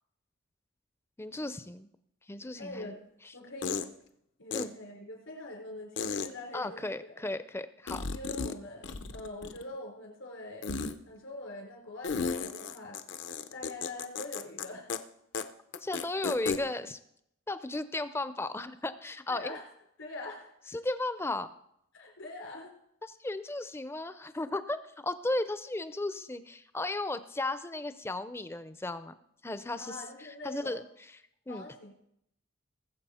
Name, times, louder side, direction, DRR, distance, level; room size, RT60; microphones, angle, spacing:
voice 1, 1.2-1.9 2.3-2.9 4.5-4.7 6.5-8.1 15.8-17.0 17.5-19.6 20.7-21.5 23.0-29.1 29.4-30.0 30.4-30.8 31.5-31.6, left 2 dB, 10° left, 13 dB, 0.5 m, -35 dB
voice 2, 2.6-3.0 3.3-3.8 4.4-7.1 8.1-10.7 11.1-13.0 13.5-14.9 19.3-19.6 20.0-20.8 21.9-22.7 29.8-30.8 31.5-31.9, left 2 dB, 80° left, 0 dB, 3.9 m, -43 dB
sound 1, 2.7-2.8 3.6-3.9 4.5-4.6 6.0-6.3 7.9-8.6 8.8-9.7 10.6-10.9 12.0-14.6 14.9-15.0 15.3-15.4 15.7-16.6, left 5 dB, 60° left, 0.7 m, -34 dB
19.5 x 7.4 x 4.3 m, 0.76 s
head